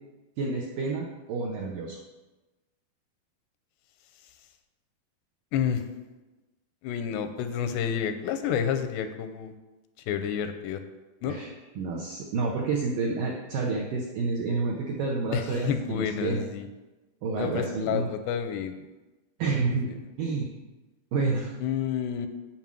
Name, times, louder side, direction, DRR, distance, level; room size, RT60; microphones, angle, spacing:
voice 1, 0.4-2.0 11.3-11.5 11.8-16.5 17.2-18.1 19.4-19.9 20.2-20.5 21.1-21.5, right 4 dB, 80° right, -1 dB, 1.9 m, -29 dB
voice 2, 5.5-5.8 6.8-9.5 10.1-10.8 11.2-11.4 15.3-16.7 17.4-18.7 19.5-19.7 21.6-22.3, left 8 dB, 90° left, 8 dB, 2.8 m, -29 dB
7.6 x 5.5 x 7.3 m, 1.1 s
omnidirectional pair, 4.9 m